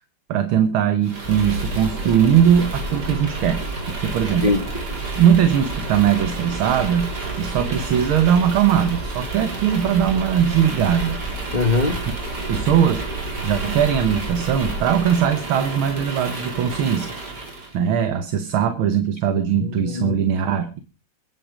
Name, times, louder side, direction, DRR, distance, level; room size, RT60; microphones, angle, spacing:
voice 1, 0.3-4.5 5.2-7.1 7.4-11.2 12.5-13.1 13.4-17.1 17.7-20.8, right 9 dB, 75° right, 9 dB, 1.9 m, -20 dB
sound 1, 1.0-17.7, right 2 dB, 50° right, 4.3 m, -29 dB
voice 2, 4.4-5.0 11.5-12.0 19.6-20.1, left 3 dB, 25° left, 6 dB, 1.3 m, -22 dB
23.0 x 8.1 x 5.1 m, 0.34 s
omnidirectional pair, 2.4 m